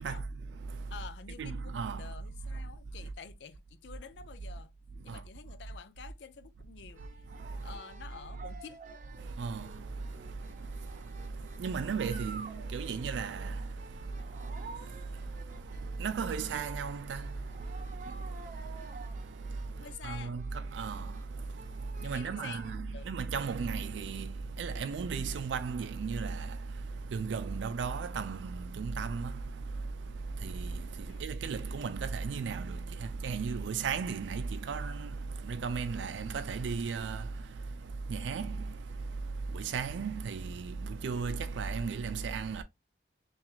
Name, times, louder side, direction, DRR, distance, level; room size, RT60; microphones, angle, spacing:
voice 1, 0.0-0.9 1.4-2.1 5.0-5.2 7.3-7.8 9.2-42.6, right 5 dB, 80° right, 0.4 m, -36 dB
voice 2, 0.9-4.7 5.0-7.0 7.6-8.8 19.8-20.4 22.0-23.1 31.1-31.5, left 6 dB, 70° left, 0.4 m, -49 dB
sound 1, 6.9-22.8, right 3 dB, 45° right, 0.7 m, -51 dB
5.8 x 2.4 x 2.4 m
head